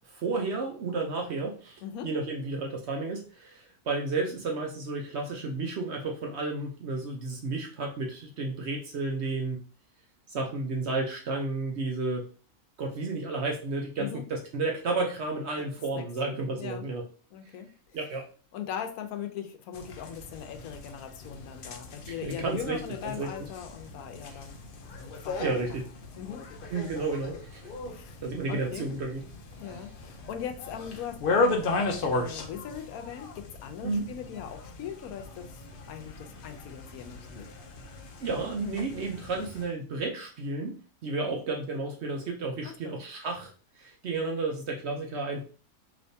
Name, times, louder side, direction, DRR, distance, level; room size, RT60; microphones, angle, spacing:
voice 1, 0.1-9.6 10.3-12.2 12.8-17.0 17.9-18.2 22.1-23.3 24.3-24.4 25.4-25.9 26.7-27.6 28.2-29.2 33.8-34.1 38.2-40.8 41.0-43.5 43.8-45.4, right 3 dB, 60° right, 1 dB, 0.8 m, -32 dB
voice 2, 17.3-17.7 18.5-24.6 25.2-25.6 26.2-26.5 27.9-28.2 28.5-28.9 29.6-35.6 35.9-37.5 42.6-42.9, left 9 dB, 80° left, 7 dB, 1.0 m, -40 dB
sound 1, 19.7-39.6, left 3 dB, 60° left, 0.5 m, -36 dB
3.4 x 2.9 x 2.6 m, 0.39 s
omnidirectional pair, 1.5 m